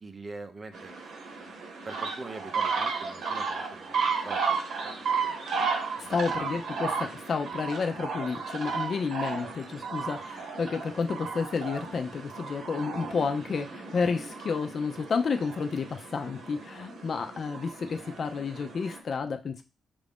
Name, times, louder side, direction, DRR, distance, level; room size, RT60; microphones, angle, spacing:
voice 1, 0.0-0.9 1.8-3.9 4.2-5.4 6.0-6.4, right 3 dB, 35° right, 8 dB, 0.6 m, -44 dB
sound 1, 0.7-19.0, right 5 dB, 75° right, 1.0 m, -34 dB
voice 2, 6.1-19.6, left 5 dB, 50° left, 6 dB, 0.6 m, -31 dB
5.4 x 2.6 x 3.5 m, 0.30 s
cardioid pair, 115°, 0 cm